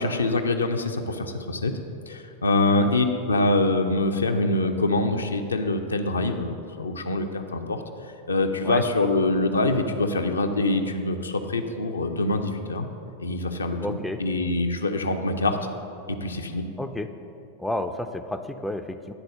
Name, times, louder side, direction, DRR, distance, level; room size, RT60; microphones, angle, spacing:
voice 1, 0.0-1.7 2.1-7.8 8.3-12.9 13.2-15.6 16.1-16.6, left 2 dB, 75° left, 5 dB, 0.5 m, -25 dB
voice 2, 13.8-14.2 16.8-17.1 17.6-19.1, left 1 dB, 5° left, 7 dB, 0.4 m, -31 dB
10.0 x 4.0 x 6.6 m, 2.7 s
figure-of-eight pair, 90°, 0 cm